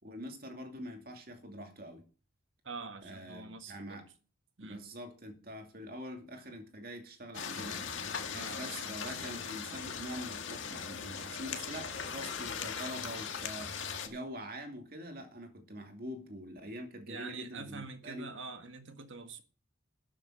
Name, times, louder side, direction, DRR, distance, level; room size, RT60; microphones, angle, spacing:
voice 1, 0.0-2.0 3.0-4.1 4.6-7.9 8.6-18.3, equal, 45° right, 2.6 m, -45 dB
voice 2, 2.6-4.0 4.6-4.8 8.3-9.2 17.1-19.4, right 4 dB, 70° right, 1.7 m, -45 dB
sound 1, 7.3-14.1, left 6 dB, 70° left, 1.7 m, -39 dB
13.0 x 7.3 x 6.2 m
head